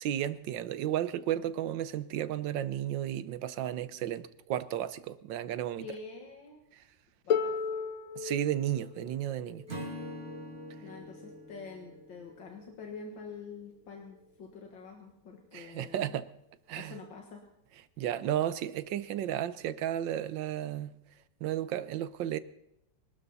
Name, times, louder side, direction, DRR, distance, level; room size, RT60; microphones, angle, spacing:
voice 1, 0.0-5.8 8.1-9.7 15.5-16.3 16.7-17.0 18.0-21.0 21.4-22.4, right 11 dB, 80° right, 15 dB, 1.5 m, -33 dB
voice 2, 5.8-6.7 7.2-7.8 10.8-16.2 16.7-17.4, left 4 dB, 85° left, 2 dB, 2.4 m, -46 dB
Harp, 7.3-13.1 14.1-14.2, left 6 dB, 55° left, 1.1 m, -37 dB
Acoustic guitar / Strum, 9.7-13.0, equal, 35° right, 2.9 m, -44 dB
25.0 x 12.5 x 4.1 m, 0.81 s
omnidirectional pair, 2.0 m